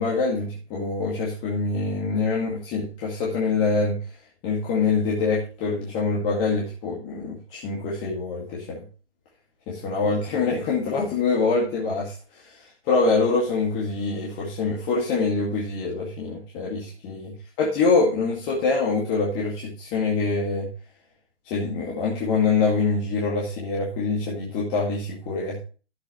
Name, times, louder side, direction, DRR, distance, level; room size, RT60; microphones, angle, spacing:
voice 1, 0.0-4.0 4.4-8.8 9.7-20.7 21.5-25.6, left 4 dB, 20° left, -5 dB, 2.2 m, -25 dB
14.0 x 8.2 x 3.1 m, 0.36 s
hypercardioid pair, 150°, 35 cm